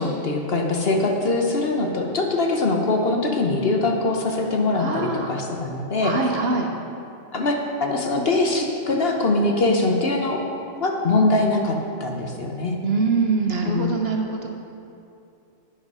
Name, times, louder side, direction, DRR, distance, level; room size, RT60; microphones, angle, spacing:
voice 1, 0.0-6.1 7.3-10.4 10.8-12.8 13.6-13.9, left 2 dB, 50° left, 2 dB, 1.1 m, -22 dB
voice 2, 4.8-5.3 6.0-6.7 12.8-14.5, right 4 dB, 50° right, 2 dB, 1.0 m, -23 dB
10.5 x 8.9 x 5.5 m, 2.6 s
omnidirectional pair, 1.4 m